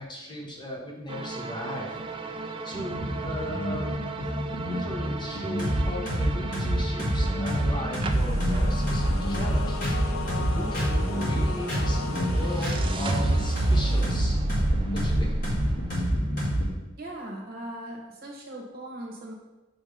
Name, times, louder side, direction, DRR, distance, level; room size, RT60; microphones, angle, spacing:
voice 1, 0.0-2.0 2.6-3.9 4.2-4.3 4.6-9.8 10.3-14.4 14.9-15.3, equal, 20° left, -2 dB, 0.9 m, -38 dB
sound 1, 1.1-16.1, right 2 dB, 25° right, 0.3 m, -33 dB
sound 2, 2.7-16.7, equal, 45° left, 1.9 m, -27 dB
sound 3, 8.1-14.2, left 4 dB, 85° left, 0.5 m, -38 dB
voice 2, 17.0-19.3, right 1 dB, 50° right, -1 dB, 1.3 m, -39 dB
6.1 x 3.1 x 5.1 m, 1.1 s
head